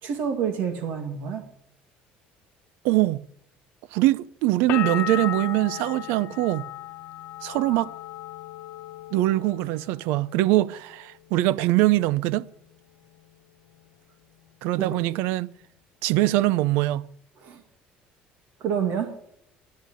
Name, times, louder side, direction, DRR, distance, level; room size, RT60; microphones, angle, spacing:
voice 1, 0.0-1.5 14.8-14.9 17.4-17.6 18.6-19.1, right 7 dB, 55° right, 2.0 m, -28 dB
voice 2, 2.8-3.2 3.9-6.7 7.4-7.9 9.1-12.5 14.6-15.5 16.0-17.1, right 17 dB, 90° right, 0.5 m, -23 dB
sound 1, 4.7-10.3 10.6-11.4, left 13 dB, 60° left, 0.8 m, -35 dB
10.5 x 10.5 x 10.0 m
cardioid pair, 170°, 4 cm